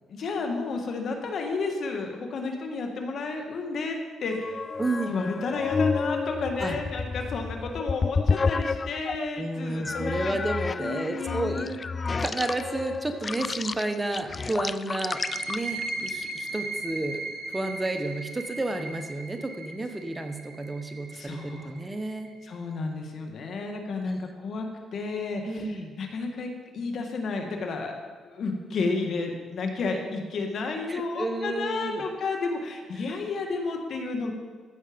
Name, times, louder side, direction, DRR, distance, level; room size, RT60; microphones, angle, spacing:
voice 1, 0.1-4.6 5.1-10.4 10.8-11.8 21.1-21.8 22.4-27.9 28.2-34.3, left 3 dB, 60° left, 3 dB, 1.7 m, -32 dB
sound 1, 4.3-9.3 9.8-16.5, left 4 dB, 35° left, 0.3 m, -30 dB
voice 2, 4.8-5.1 6.6-6.8 9.4-11.7 12.2-15.2 15.5-17.2 17.5-22.3 24.1-24.2 25.4-26.0 30.9-32.0 33.0-33.1, right 2 dB, 15° right, 6 dB, 1.0 m, -31 dB
sound 2, 15.0-22.4, right 3 dB, 60° right, 4.1 m, -37 dB
14.5 x 6.5 x 5.2 m, 1.5 s
cardioid pair, 90°, 0 cm